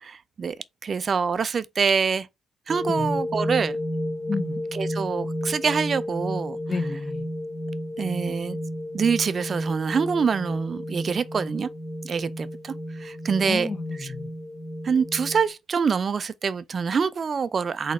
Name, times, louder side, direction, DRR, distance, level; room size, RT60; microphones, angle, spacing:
voice 1, 0.0-0.6 0.8-2.3 2.7-3.8 4.7-6.6 8.0-8.6 8.9-11.7 12.0-13.7 14.0-14.1 14.8-17.9, right 6 dB, 45° right, 0.5 m, -25 dB
sound 1, 2.7-15.5, equal, ahead, 1.4 m, -32 dB
voice 2, 2.9-3.2 4.3-4.6 6.7-7.2 13.4-14.3, left 4 dB, 40° left, 1.6 m, -31 dB
4.1 x 3.0 x 4.1 m
supercardioid pair, 55°, 0 cm